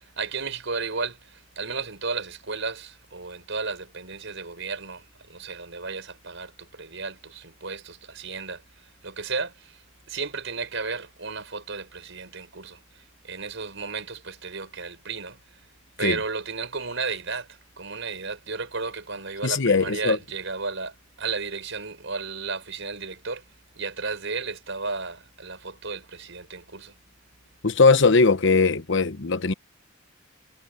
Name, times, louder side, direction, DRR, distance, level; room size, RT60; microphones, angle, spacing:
voice 1, 0.0-8.6 9.0-9.8 10.1-15.4 16.0-23.4 23.8-26.9, right 4 dB, 65° right, 6.2 m, -33 dB
voice 2, 19.4-20.2 27.6-29.5, left 4 dB, 65° left, 1.0 m, -19 dB
head